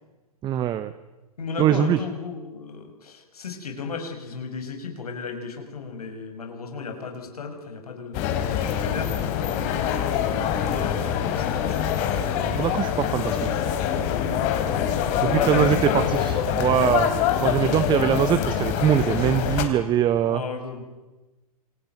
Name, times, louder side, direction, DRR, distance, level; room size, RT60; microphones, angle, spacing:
voice 1, 0.4-0.9 1.6-2.0 12.3-13.6 15.2-17.1 17.4-20.4, right 11 dB, 25° right, 13 dB, 1.1 m, -23 dB
voice 2, 1.4-9.1 10.6-11.9 15.2-16.1 20.3-20.8, left 5 dB, 75° left, 5 dB, 6.2 m, -34 dB
sound 1, 8.1-19.6, left 9 dB, 40° left, 4.0 m, -24 dB
28.0 x 22.0 x 9.3 m, 1.1 s
hypercardioid pair, 115°, 19 cm